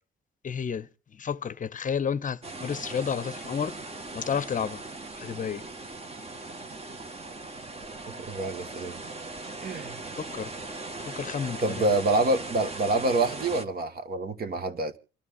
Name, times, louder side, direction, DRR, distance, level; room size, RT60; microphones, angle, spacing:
voice 1, 0.4-0.9 1.2-3.7 4.1-4.8 5.2-5.6 10.3-10.5 11.1-11.9, left 7 dB, 40° left, 0.7 m, -31 dB
sound 1, 2.4-13.6, right 2 dB, 30° right, 1.5 m, -39 dB
voice 2, 8.3-9.0 9.6-10.0 11.6-14.9, right 2 dB, 50° right, 1.6 m, -27 dB
28.0 x 12.5 x 2.5 m
cardioid pair, 90°, 20 cm